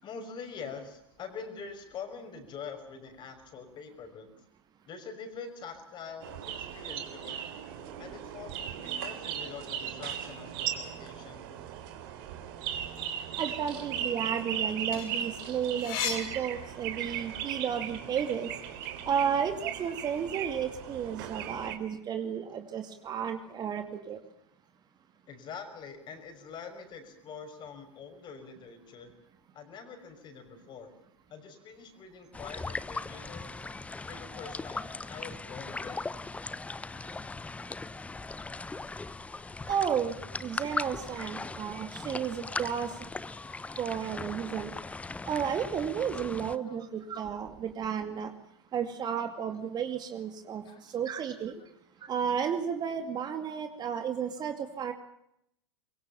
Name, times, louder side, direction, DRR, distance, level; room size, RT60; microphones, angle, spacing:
voice 1, 0.0-4.3 4.9-7.4 8.0-11.5 25.3-29.1 29.5-30.9 31.3-33.7 34.0-36.1 46.7-46.8 50.6-50.8 52.0-52.1 53.9-54.0, left 5 dB, 30° left, 7 dB, 5.9 m, -45 dB
sound 1, 6.2-21.8, right 9 dB, 50° right, 3.7 m, -37 dB
voice 2, 13.4-18.5 19.0-24.2 39.7-40.1 40.4-42.9 43.8-44.7 45.3-48.3 48.7-51.5 52.0-54.9, right 8 dB, 30° right, 8 dB, 2.4 m, -32 dB
sound 2, 14.6-17.3 17.8-19.2, left 7 dB, 50° left, 5.9 m, -38 dB
sound 3, 32.3-46.6, left 3 dB, 10° left, 1.0 m, -39 dB
24.5 x 23.0 x 7.3 m, 0.77 s
figure-of-eight pair, 85°, 14 cm